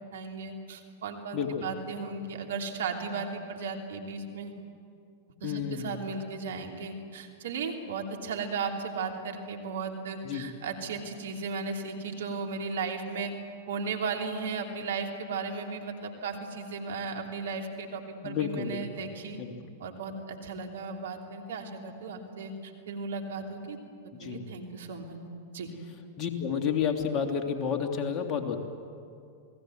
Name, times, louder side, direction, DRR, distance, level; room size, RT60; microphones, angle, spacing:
voice 1, 0.1-4.5 5.4-13.3 13.7-19.4 19.8-23.8 24.2-25.2 25.5-25.7, right 4 dB, 70° right, 2 dB, 3.1 m, -35 dB
voice 2, 1.3-1.7 5.4-6.0 10.2-10.4 18.2-19.1 19.4-19.5 24.2-24.4 26.2-28.6, left 7 dB, 35° left, 3 dB, 2.8 m, -31 dB
28.5 x 19.0 x 7.9 m, 2.4 s
hypercardioid pair, 100°, 0 cm